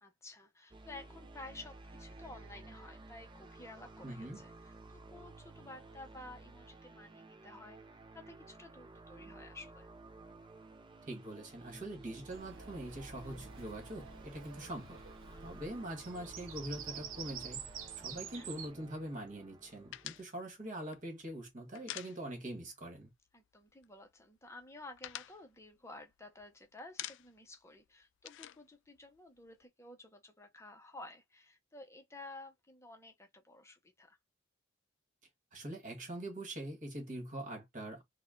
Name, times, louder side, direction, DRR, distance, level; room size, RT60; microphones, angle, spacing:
voice 1, 0.0-9.9 18.3-18.5 23.3-34.2, left 2 dB, 15° left, 0.7 m, -53 dB
sound 1, 0.7-20.2, right 2 dB, 25° right, 0.5 m, -54 dB
voice 2, 4.0-4.4 11.1-15.0 15.4-17.7 18.0-23.1 35.5-38.0, right 1 dB, 40° right, 1.5 m, -43 dB
Bird vocalization bird call bird song, 12.3-18.7, right 7 dB, 75° right, 0.8 m, -48 dB
sound 2, 19.9-22.7 23.0-23.1 23.4-24.1 24.5-26.5 26.8-27.5 27.8-29.6, left 13 dB, 60° left, 0.3 m, -47 dB
4.1 x 2.2 x 3.7 m
head